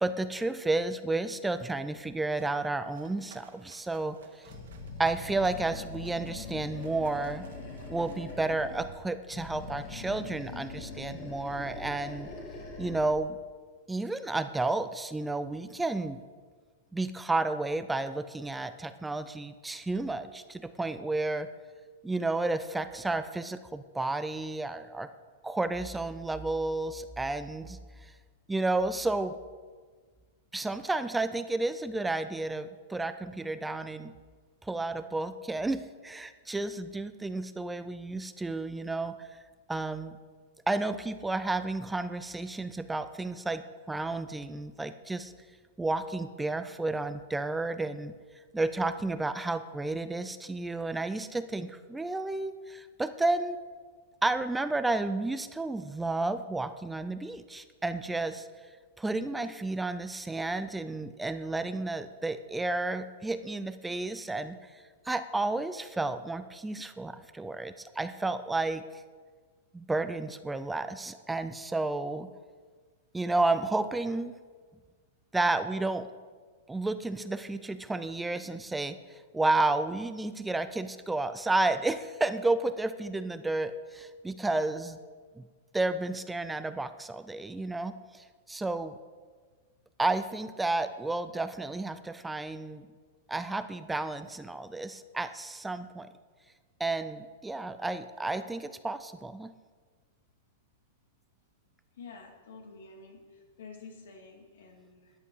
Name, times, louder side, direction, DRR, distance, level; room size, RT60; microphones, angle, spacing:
voice 1, 0.0-4.5 5.0-7.5 7.9-12.3 12.8-13.4 13.9-16.2 16.9-21.5 22.0-25.1 25.4-28.1 28.5-29.4 30.5-34.1 34.6-39.4 39.7-40.1 40.7-43.6 43.9-45.3 45.8-48.1 48.5-53.6 54.2-58.5 59.0-69.0 69.7-72.3 73.1-74.4 75.3-76.1 76.7-85.0 85.4-85.5 85.7-88.9 90.0-92.8 93.3-96.1 96.8-99.5, right 2 dB, 5° right, 11 dB, 0.3 m, -32 dB
sound 1, 2.1-9.0, right 6 dB, 90° right, 2.1 m, -57 dB
Animal, 4.5-9.0 9.3-13.2, left 3 dB, 30° left, 2.1 m, -42 dB
voice 2, 102.0-105.1, left 4 dB, 80° left, 2 dB, 2.7 m, -49 dB
13.5 x 10.0 x 4.9 m, 1.5 s
supercardioid pair, 165°, 0 cm